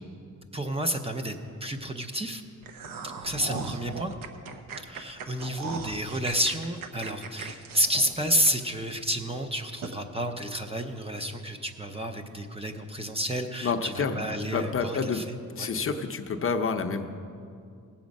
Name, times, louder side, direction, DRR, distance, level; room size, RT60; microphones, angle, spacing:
voice 1, 0.5-1.4 1.6-2.4 3.2-4.1 4.8-15.7, equal, 20° right, 6 dB, 0.5 m, -30 dB
sound 1, 2.6-8.9 9.3-9.4 9.8-10.0, right 4 dB, 85° right, 0.9 m, -38 dB
voice 2, 13.6-15.2 15.5-17.1, left 5 dB, 40° left, 6 dB, 0.6 m, -29 dB
17.5 x 7.3 x 5.2 m, 2.3 s
wide cardioid pair, 165°, 33 cm